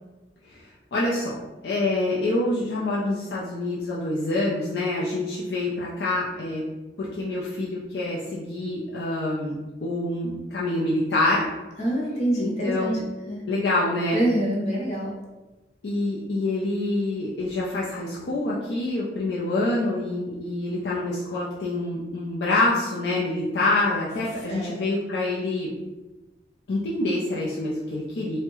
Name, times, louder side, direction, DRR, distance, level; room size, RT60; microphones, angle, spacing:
voice 1, 0.9-1.4 1.6-6.6 7.0-11.5 12.4-13.0 13.5-14.2 15.8-25.7 26.7-28.4, left 2 dB, 80° left, -6 dB, 0.5 m, -26 dB
voice 2, 11.8-13.0 13.3-13.5 14.1-15.1 24.5-24.8, right 1 dB, 40° left, -3 dB, 0.7 m, -26 dB
3.4 x 2.1 x 3.0 m, 1.1 s
head